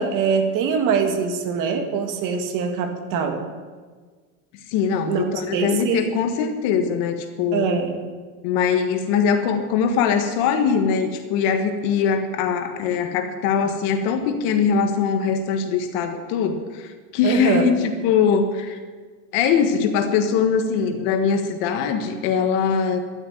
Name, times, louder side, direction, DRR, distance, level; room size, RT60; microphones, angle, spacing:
voice 1, 0.0-3.4 5.1-6.2 7.5-7.9 17.2-17.7, right 6 dB, 40° right, 6 dB, 1.8 m, -23 dB
voice 2, 4.7-7.8 8.4-18.8 19.3-23.0, left 6 dB, 55° left, 7 dB, 1.7 m, -22 dB
12.0 x 9.7 x 9.4 m, 1.5 s
cardioid pair, 175°, 49 cm